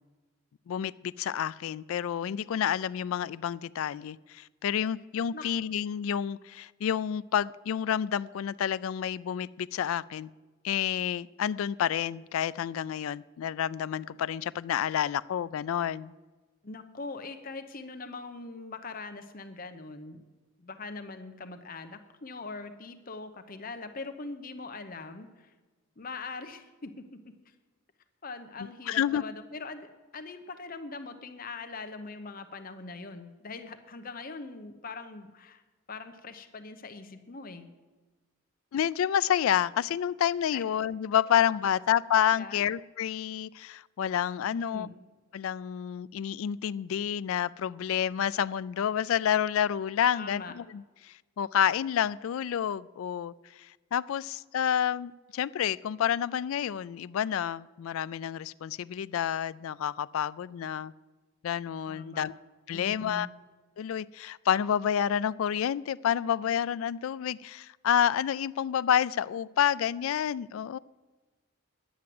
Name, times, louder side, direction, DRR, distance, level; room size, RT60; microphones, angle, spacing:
voice 1, 0.7-10.3 10.6-16.1 28.9-29.2 38.7-44.9 45.3-60.9 61.4-62.3 62.7-63.3 63.8-70.8, left 9 dB, 75° left, 0.3 m, -29 dB
voice 2, 16.6-20.2 20.6-25.5 26.0-27.2 28.2-35.6 35.9-37.7 40.5-40.6 42.4-42.6 44.5-44.9 50.1-50.5 61.9-62.3 62.7-63.3, left 3 dB, 40° left, 0.8 m, -42 dB
10.5 x 9.5 x 7.6 m
head